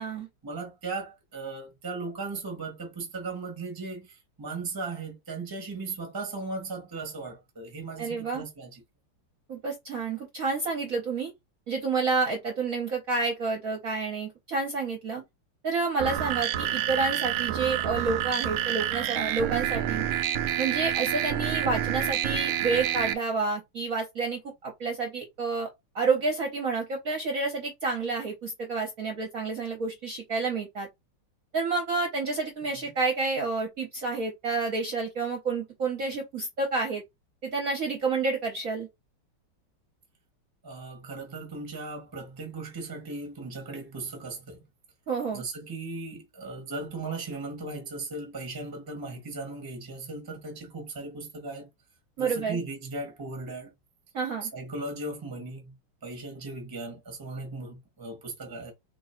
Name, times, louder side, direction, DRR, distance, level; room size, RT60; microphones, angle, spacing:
voice 1, 0.4-8.8 40.6-44.6 45.3-51.7 52.2-53.7 54.4-55.7 56.0-58.7, right 3 dB, 15° right, 1.0 m, -37 dB
voice 2, 8.0-8.4 9.5-11.3 11.7-15.2 15.6-20.0 20.6-25.7 25.9-30.9 31.5-37.0 37.4-38.9 45.1-45.4 52.2-52.6 54.1-54.5, right 4 dB, 50° right, 1.1 m, -29 dB
sound 1, 16.0-23.1, right 11 dB, 85° right, 1.4 m, -28 dB
3.1 x 3.0 x 4.3 m
omnidirectional pair, 2.3 m